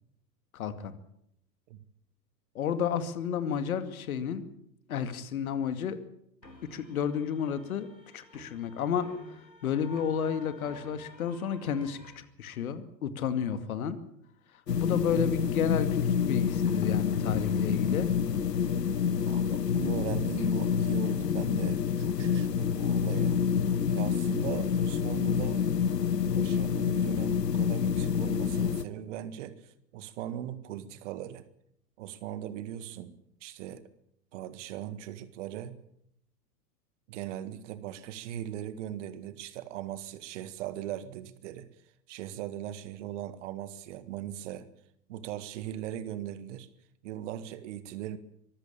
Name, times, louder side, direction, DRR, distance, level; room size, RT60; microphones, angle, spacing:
voice 1, 0.5-1.0 2.5-4.4 4.9-6.0 6.6-9.1 9.6-14.0 14.7-18.1, left 7 dB, 55° left, 11 dB, 2.4 m, -31 dB
sound 1, 6.4-12.2, left 1 dB, 90° left, 3.4 m, -51 dB
sound 2, 14.7-28.8, left 7 dB, 75° left, 1.1 m, -28 dB
voice 2, 19.3-23.4 23.9-25.7 26.3-31.4 32.0-33.1 33.4-33.8 34.3-35.8 37.1-41.7 42.1-44.7 45.1-46.7 47.0-48.2, right 11 dB, 45° right, 14 dB, 1.9 m, -39 dB
24.0 x 15.5 x 8.8 m, 0.74 s
figure-of-eight pair, 95°, 50 cm